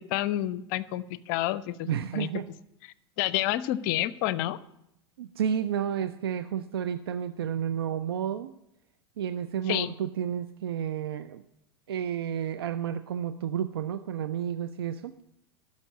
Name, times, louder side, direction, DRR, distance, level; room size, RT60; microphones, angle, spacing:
voice 1, 0.1-2.3 3.2-4.6 9.7-9.9, left 14 dB, 50° left, 17 dB, 0.6 m, -29 dB
voice 2, 1.8-2.5 5.2-8.5 9.2-11.4 11.9-15.1, right 9 dB, 70° right, 12 dB, 0.5 m, -31 dB
12.0 x 6.4 x 8.4 m, 0.82 s
figure-of-eight pair, 85°, 13 cm